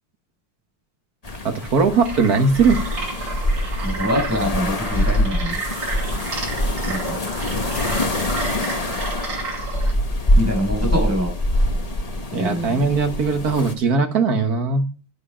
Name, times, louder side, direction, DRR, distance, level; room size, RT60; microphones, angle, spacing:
sound 1, 1.2-13.7, left 1 dB, 25° left, 1.0 m, -24 dB
voice 1, 1.4-2.8 12.3-14.9, right 4 dB, 50° right, 6 dB, 1.8 m, -19 dB
sound 2, 2.0-9.9, right 3 dB, 85° right, 3.8 m, -32 dB
voice 2, 3.8-5.6 6.8-7.2 10.3-11.3 12.3-12.8, equal, 5° right, 0 dB, 6.5 m, -24 dB
11.5 x 9.6 x 5.6 m, 0.36 s
omnidirectional pair, 2.3 m